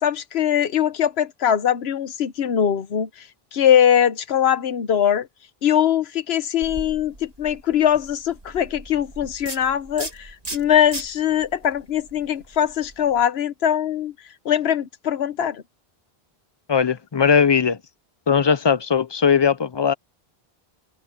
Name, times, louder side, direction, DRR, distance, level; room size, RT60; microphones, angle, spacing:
voice 1, 0.0-3.1 3.5-5.3 5.6-14.1 14.4-15.6, left 9 dB, 90° left, 1.1 m, -21 dB
sound 1, 6.6-13.2, right 2 dB, 40° right, 2.6 m, -39 dB
voice 2, 16.7-17.8 18.3-19.9, left 6 dB, 35° left, 0.5 m, -19 dB
omnidirectional pair, 1.0 m